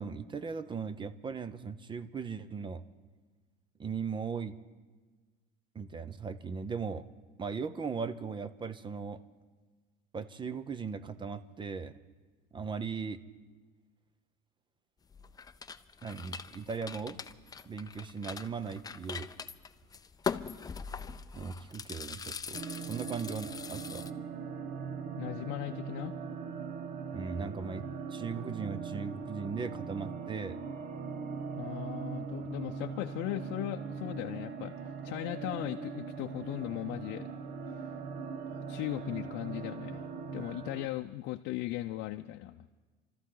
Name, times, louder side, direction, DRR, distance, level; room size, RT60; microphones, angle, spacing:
voice 1, 0.0-2.8 3.8-4.5 5.7-7.0 7.4-9.2 10.1-11.9 12.5-13.2 16.0-17.2 17.7-19.3 21.3-24.1 27.1-30.6, right 5 dB, 25° right, 14 dB, 0.8 m, -38 dB
sound 1, 15.1-24.1, left 6 dB, 20° left, 0.5 m, -42 dB
sound 2, 22.5-40.9, right 5 dB, 45° right, 1.2 m, -40 dB
voice 2, 25.2-26.2 31.6-37.3 37.7-37.9 38.5-40.1 40.3-42.7, left 16 dB, 65° left, 6 dB, 0.6 m, -38 dB
27.5 x 13.5 x 3.9 m, 1.3 s
supercardioid pair, 115°, 21 cm